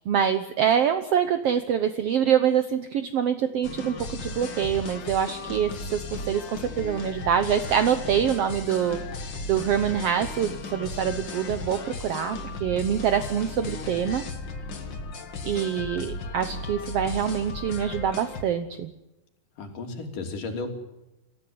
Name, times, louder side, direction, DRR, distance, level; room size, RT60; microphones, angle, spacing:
voice 1, 0.1-9.0 9.5-14.2 15.4-18.9, right 8 dB, 70° right, 10 dB, 1.4 m, -25 dB
sound 1, 3.6-18.4, left 3 dB, 40° left, 1.9 m, -36 dB
voice 2, 19.6-20.7, left 3 dB, 65° left, 3 dB, 4.7 m, -33 dB
27.5 x 15.0 x 9.5 m, 0.97 s
omnidirectional pair, 4.1 m